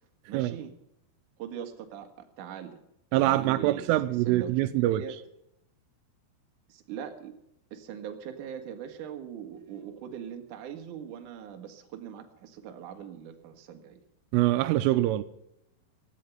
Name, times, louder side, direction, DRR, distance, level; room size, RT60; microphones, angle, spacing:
voice 1, 0.3-0.7 1.4-2.8 3.1-3.9 4.2-5.2 6.7-7.3 7.7-14.0, right 9 dB, 50° right, 2.8 m, -41 dB
voice 2, 3.1-5.0 14.3-15.2, right 15 dB, 85° right, 3.3 m, -24 dB
18.5 x 13.5 x 5.7 m
omnidirectional pair, 5.7 m